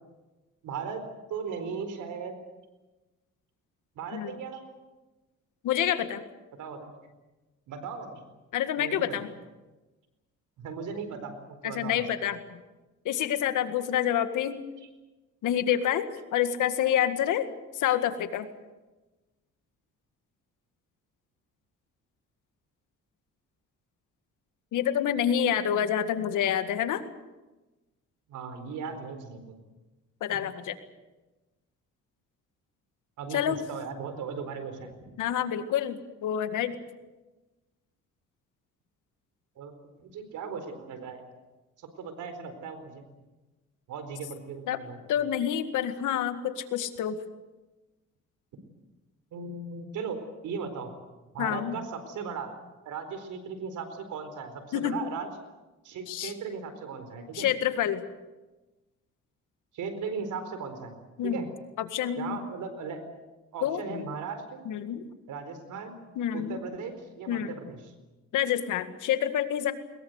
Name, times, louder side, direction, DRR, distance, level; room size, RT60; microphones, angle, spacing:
voice 1, 0.6-2.4 3.9-4.6 6.5-6.9 7.7-8.2 8.8-9.2 10.6-12.1 28.3-29.6 30.3-30.4 33.2-35.0 39.6-39.7 40.0-41.2 41.8-43.0 43.9-45.0 49.3-50.9 51.3-52.5 52.8-55.3 55.8-57.5 59.7-60.9 61.2-61.5 62.2-63.0 63.5-64.6 65.3-66.0 66.3-67.9, right 5 dB, 80° right, 9 dB, 4.4 m, -37 dB
voice 2, 5.6-6.2 8.5-9.3 11.6-12.4 13.1-14.6 15.4-17.5 17.8-18.5 24.7-27.0 30.2-30.8 33.3-33.6 35.2-36.8 44.7-44.8 45.1-47.2 51.4-51.7 54.7-55.0 56.1-56.3 57.3-58.0 61.2-61.4 61.9-62.4 63.6-64.0 64.7-65.0 66.2-66.6 67.3-67.5 68.3-69.7, left 10 dB, 80° left, 9 dB, 1.9 m, -28 dB
21.5 x 21.5 x 8.0 m, 1.1 s
cardioid pair, 90°, 30 cm